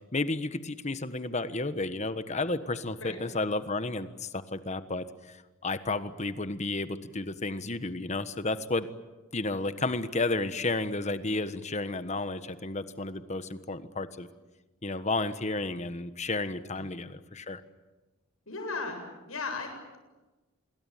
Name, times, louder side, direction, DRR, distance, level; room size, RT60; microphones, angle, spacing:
voice 1, 0.0-8.9 9.3-14.3 14.8-17.6, left 2 dB, 35° left, 12 dB, 1.4 m, -32 dB
voice 2, 18.5-19.0 19.3-20.0, left 4 dB, 80° left, 4 dB, 7.8 m, -36 dB
27.0 x 22.0 x 9.2 m, 1.1 s
head